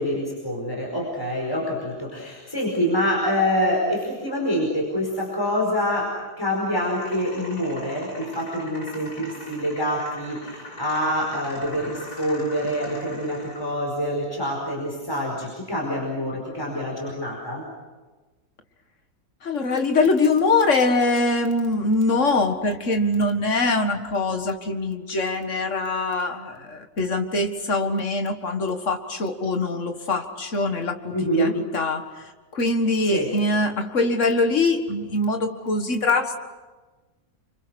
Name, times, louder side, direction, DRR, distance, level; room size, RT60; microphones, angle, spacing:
voice 1, 0.0-6.1 6.4-17.6 31.1-31.5 33.1-33.3, equal, 15° left, -2 dB, 5.0 m, -26 dB
sound 1, 6.7-13.7, left 1 dB, 70° left, 5.8 m, -41 dB
voice 2, 19.4-32.0 32.5-36.4, left 2 dB, 50° left, 6 dB, 2.1 m, -23 dB
29.0 x 25.5 x 6.4 m, 1.2 s
omnidirectional pair, 1.7 m